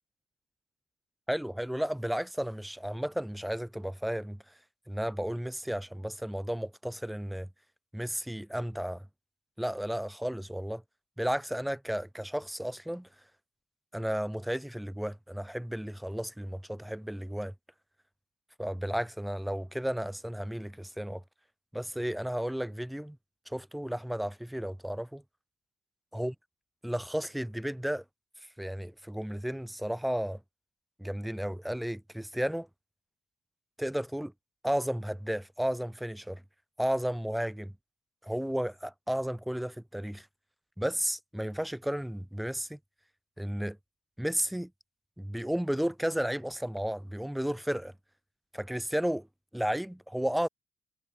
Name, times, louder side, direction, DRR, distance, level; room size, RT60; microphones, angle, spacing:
voice 1, 1.3-4.4 4.9-7.5 7.9-9.1 9.6-10.8 11.2-13.1 13.9-17.5 18.6-21.2 21.7-23.2 23.5-25.2 26.1-26.3 26.8-28.0 28.6-30.4 31.0-32.7 33.8-34.3 34.6-36.4 36.8-37.7 38.2-40.3 40.8-42.8 43.4-43.8 44.2-44.7 45.2-47.9 48.5-49.3 49.5-50.5, equal, 5° right, 7.5 m, -33 dB
hypercardioid pair, 55°, 0 cm